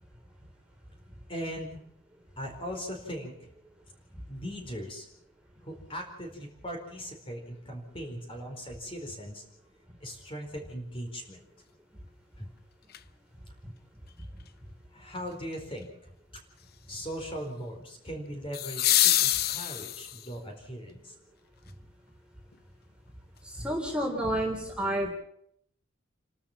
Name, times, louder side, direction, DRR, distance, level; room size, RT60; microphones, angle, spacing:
voice 1, 1.3-1.8 2.4-3.5 4.3-5.1 5.6-9.4 10.0-11.5 12.4-12.5 14.9-16.0 16.9-21.1, equal, 25° left, 3 dB, 4.5 m, -39 dB
sound 1, 12.9-13.0 18.5-20.3 22.5-22.6, left 13 dB, 45° left, 0.7 m, -25 dB
voice 2, 23.4-25.1, right 1 dB, 5° right, 0 dB, 3.5 m, -30 dB
28.5 x 13.0 x 7.3 m, 0.71 s
head